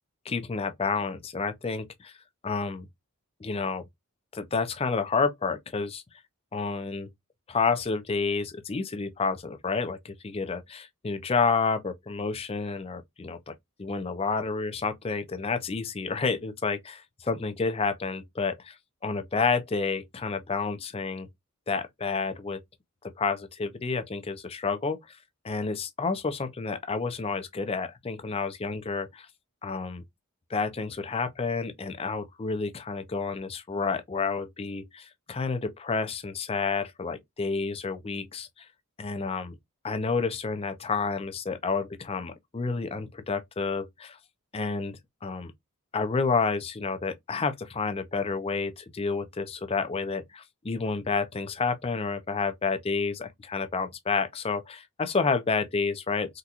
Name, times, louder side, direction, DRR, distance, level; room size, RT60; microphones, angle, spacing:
voice 1, 0.3-2.1 2.4-2.9 3.4-3.8 4.3-6.0 6.5-7.1 7.5-13.5 13.8-18.8 19.0-21.3 21.7-22.6 23.2-25.2 25.4-29.3 29.6-30.0 30.5-38.7 39.0-39.6 39.8-44.2 44.5-45.5 45.9-56.4, left 4 dB, 25° left, 0.4 m, -30 dB
3.8 x 2.2 x 2.8 m
head